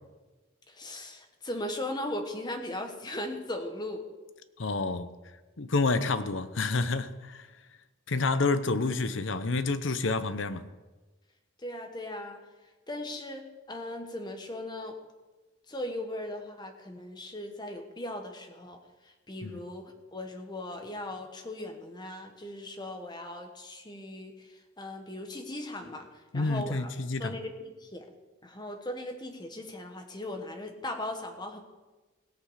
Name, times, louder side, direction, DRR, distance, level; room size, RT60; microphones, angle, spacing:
voice 1, 0.7-4.0 11.6-12.4 12.9-14.9 15.7-18.8 19.3-26.1 26.3-26.9 27.2-28.1 28.4-31.6, left 1 dB, 20° left, 1.3 m, -38 dB
voice 2, 4.6-5.1 5.6-7.4 8.1-10.6 19.4-19.6 26.3-27.3, left 3 dB, 65° left, 0.8 m, -28 dB
17.5 x 8.0 x 4.9 m
head